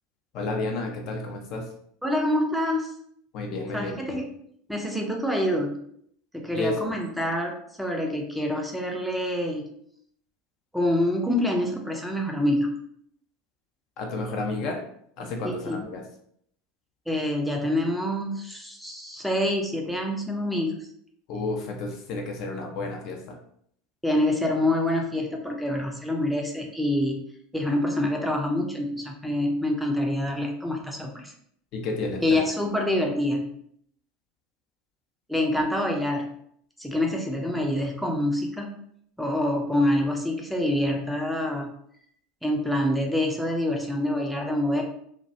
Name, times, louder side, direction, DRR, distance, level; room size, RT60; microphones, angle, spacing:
voice 1, 0.3-1.7 3.3-4.2 6.5-6.8 14.0-14.8 15.2-16.0 21.3-23.4 31.7-32.4, left 2 dB, 50° left, 2 dB, 0.5 m, -31 dB
voice 2, 2.0-2.9 3.7-4.3 4.7-5.8 6.3-9.7 10.7-12.7 15.4-15.8 17.1-20.9 24.0-27.2 27.5-31.3 32.2-33.5 35.3-36.3 36.8-38.7 39.2-41.7 42.4-44.8, left 1 dB, ahead, 1 dB, 0.5 m, -26 dB
2.2 x 2.1 x 2.6 m, 0.66 s
figure-of-eight pair, 80°, 0 cm